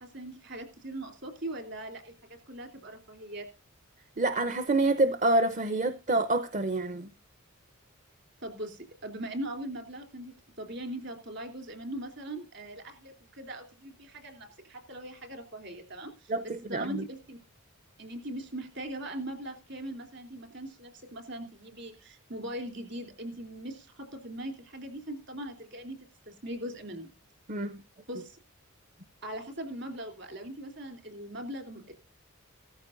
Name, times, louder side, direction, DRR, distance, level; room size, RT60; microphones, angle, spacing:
voice 1, 0.0-3.5 8.4-16.3 16.6-17.4 18.0-26.0 26.3-27.1 28.1-28.4 29.2-31.9, right 1 dB, 55° right, 3.3 m, -40 dB
voice 2, 4.2-7.1 16.3-17.0 27.5-27.8, right 2 dB, 35° right, 0.7 m, -27 dB
17.0 x 14.0 x 2.6 m
head